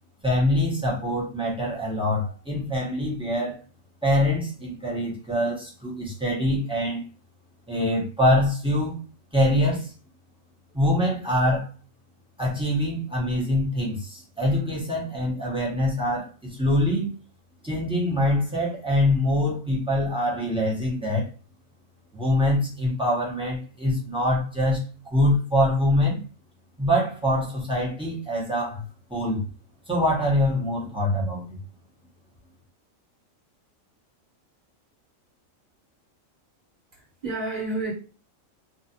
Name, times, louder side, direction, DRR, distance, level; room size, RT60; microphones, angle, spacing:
voice 1, 0.2-3.6 4.0-7.0 7.7-9.0 9.3-9.9 10.7-11.7 12.4-17.1 17.6-21.3 22.1-26.2 26.8-28.8 29.1-29.4 29.9-31.6, left 1 dB, 5° right, -3 dB, 0.7 m, -24 dB
voice 2, 36.9-37.9, right 2 dB, 35° right, -5 dB, 1.1 m, -30 dB
2.4 x 2.4 x 2.7 m, 0.35 s
omnidirectional pair, 1.4 m